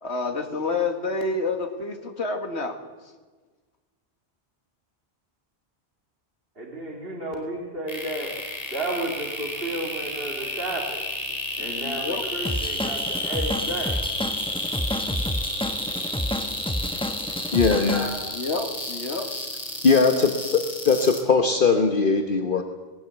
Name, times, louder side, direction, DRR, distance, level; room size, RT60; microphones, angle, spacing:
voice 1, 0.0-2.8 11.6-12.2 18.3-19.3, left 3 dB, 75° left, 6 dB, 2.2 m, -29 dB
voice 2, 6.6-8.4 8.7-11.0 11.6-14.0 17.9-18.3, right 1 dB, 60° right, -1 dB, 2.6 m, -32 dB
sound 1, 7.9-21.2, left 1 dB, 35° left, 3.5 m, -31 dB
Drum kit / Drum, 12.4-18.1, left 1 dB, 5° left, 0.8 m, -30 dB
voice 3, 17.5-18.1 19.8-22.6, left 4 dB, 50° left, 5 dB, 1.3 m, -20 dB
20.0 x 17.0 x 8.1 m, 1.4 s
omnidirectional pair, 1.1 m